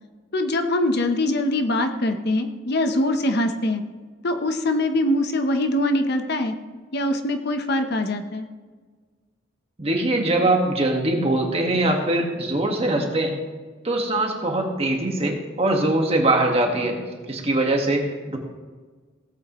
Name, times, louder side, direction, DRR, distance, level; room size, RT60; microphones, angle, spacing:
voice 1, 0.3-3.8 4.2-6.5 6.9-8.5, left 1 dB, 55° left, 6 dB, 0.9 m, -23 dB
voice 2, 9.8-13.4 13.8-16.9 17.3-18.4, right 2 dB, 30° right, 2 dB, 1.6 m, -22 dB
17.5 x 8.5 x 3.1 m, 1.4 s
head